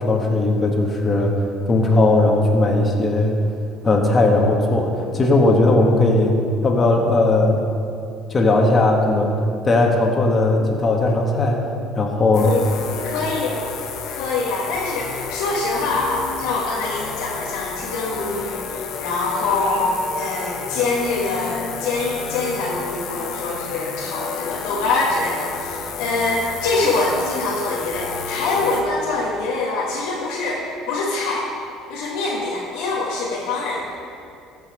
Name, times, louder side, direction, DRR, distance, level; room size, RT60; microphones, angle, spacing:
voice 1, 0.0-1.3 1.7-3.4 3.8-6.4 6.6-7.6 8.3-9.4 9.6-11.6 12.0-12.5, left 2 dB, 30° left, 1 dB, 1.8 m, -17 dB
sound 1, 12.3-28.8, left 5 dB, 70° left, 1.1 m, -31 dB
voice 2, 13.0-13.6 14.2-31.5 31.9-33.9, left 3 dB, 85° left, -5 dB, 1.5 m, -24 dB
14.5 x 5.7 x 5.3 m, 2.6 s
supercardioid pair, 90°, 0 cm